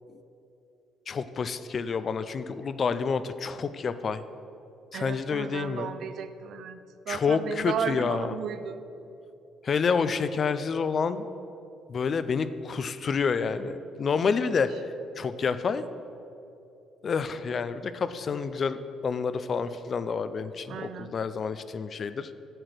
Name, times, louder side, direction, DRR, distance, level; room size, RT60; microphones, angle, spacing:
voice 1, 1.1-4.2 4.9-5.9 7.1-8.3 9.6-11.3 11.9-14.7 15.2-15.8 17.0-22.3, left 5 dB, 35° left, 13 dB, 0.4 m, -28 dB
voice 2, 4.9-8.8 14.1-14.5 20.7-21.1, right 8 dB, 55° right, 11 dB, 0.5 m, -35 dB
8.8 x 7.8 x 6.5 m, 2.8 s
cardioid pair, 160°, 0 cm